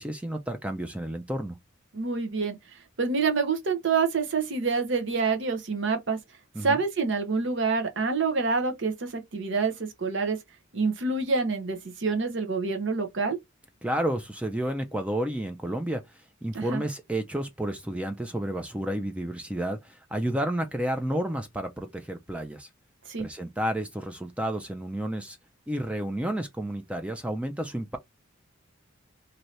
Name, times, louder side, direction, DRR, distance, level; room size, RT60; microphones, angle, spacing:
voice 1, 0.0-1.6 6.5-6.8 13.8-22.7 23.2-25.4 25.7-28.0, right 1 dB, 5° right, 0.3 m, -31 dB
voice 2, 1.9-2.6 3.0-6.2 6.6-10.4 10.7-13.4 16.5-16.8 23.1-23.3, right 4 dB, 60° right, 0.7 m, -27 dB
2.7 x 2.7 x 3.1 m
head